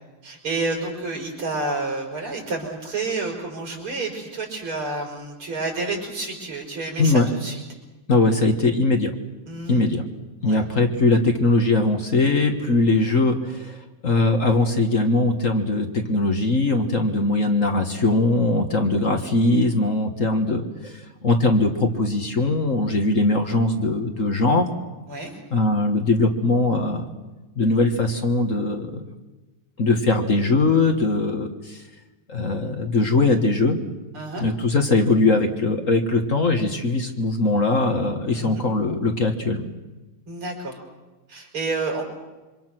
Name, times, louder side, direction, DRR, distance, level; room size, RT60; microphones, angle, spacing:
voice 1, 0.2-7.6 9.5-9.8 10.4-10.6 25.1-25.3 34.1-34.5 38.3-38.7 40.3-40.8 41.3-42.0, right 3 dB, 85° right, 1 dB, 5.8 m, -29 dB
voice 2, 8.1-9.1 9.7-10.1 10.4-24.7 25.5-27.1 27.6-29.0 29.8-31.8 32.3-33.8 34.4-39.7, left 2 dB, 40° left, 5 dB, 1.8 m, -21 dB
26.5 x 25.0 x 6.1 m, 1.2 s
omnidirectional pair, 2.3 m